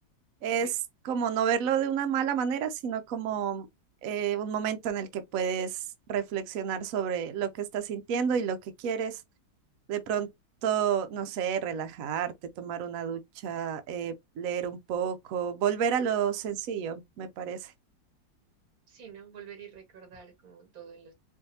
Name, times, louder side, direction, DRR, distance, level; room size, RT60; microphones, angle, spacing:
voice 1, 0.4-0.7 1.0-3.7 4.0-5.8 6.1-9.2 9.9-10.3 10.6-17.7, right 8 dB, 70° right, 0.8 m, -30 dB
voice 2, 18.9-21.1, right 7 dB, 50° right, 2.1 m, -48 dB
4.7 x 2.6 x 2.7 m
omnidirectional pair, 2.0 m